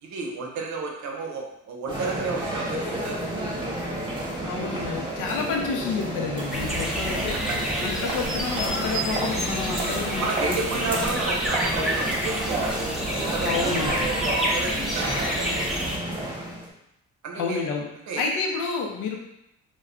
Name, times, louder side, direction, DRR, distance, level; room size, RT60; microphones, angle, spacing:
voice 1, 0.0-3.7 7.3-7.9 10.2-15.7 17.2-17.7 18.1-18.2, right 3 dB, 70° right, 0 dB, 0.6 m, -32 dB
sound 1, 1.9-16.7, right 1 dB, 15° right, 0.9 m, -30 dB
voice 2, 4.4-7.4 7.8-10.6 13.4-14.0 17.3-17.9 18.2-19.2, left 5 dB, 85° left, 1 dB, 0.6 m, -29 dB
sound 2, 6.5-16.0, equal, ahead, 0.5 m, -29 dB
2.2 x 2.2 x 3.6 m, 0.82 s
cardioid pair, 90°, 30 cm